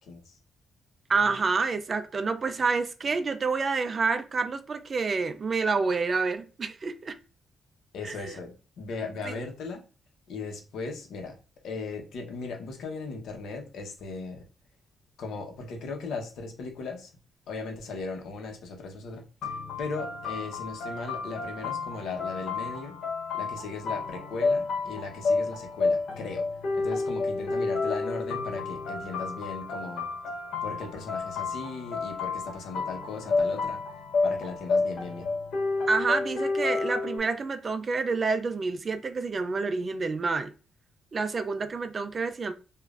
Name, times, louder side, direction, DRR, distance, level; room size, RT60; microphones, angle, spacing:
voice 1, 0.0-0.4 7.9-9.8 10.3-11.4 11.6-14.4 15.2-17.1 17.5-23.0 23.3-26.5 26.7-30.1 30.6-33.8 34.2-35.3, left 4 dB, 85° left, 0.9 m, -37 dB
voice 2, 1.1-7.2 8.0-8.2 9.3-9.4 35.9-40.5 41.1-42.5, right 4 dB, 30° right, 0.3 m, -28 dB
sound 1, 19.4-37.2, left 3 dB, 65° left, 1.2 m, -30 dB
5.1 x 2.4 x 2.4 m
wide cardioid pair, 175°, 0 cm